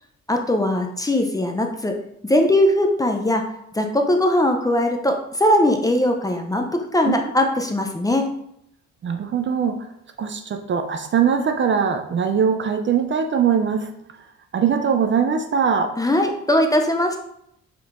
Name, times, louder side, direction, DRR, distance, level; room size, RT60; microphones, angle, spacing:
voice 1, 0.3-2.0 2.2-3.5 3.7-8.3 16.0-17.2, left 1 dB, 10° left, 3 dB, 0.5 m, -20 dB
voice 2, 9.0-9.9 10.2-13.9 14.5-15.9, right 7 dB, 40° right, 7 dB, 0.4 m, -21 dB
4.4 x 3.7 x 2.5 m, 0.75 s
cardioid pair, 90°, 30 cm